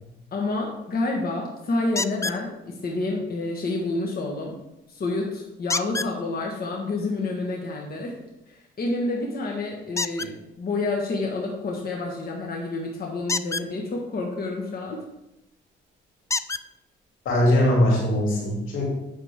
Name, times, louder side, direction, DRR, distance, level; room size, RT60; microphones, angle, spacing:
voice 1, 0.3-4.6 4.9-8.2 8.5-15.0, left 2 dB, 50° left, -1 dB, 1.6 m, -29 dB
sound 1, 2.0-2.4 5.7-6.1 9.9-10.3 13.2-13.7 15.3-15.4 16.3-16.6 17.6-17.7 18.2-18.3, left 4 dB, 15° left, 0.3 m, -27 dB
voice 2, 17.2-18.8, left 1 dB, 85° left, -3 dB, 3.0 m, -21 dB
8.8 x 6.6 x 3.6 m, 0.89 s
cardioid pair, 90°, 20 cm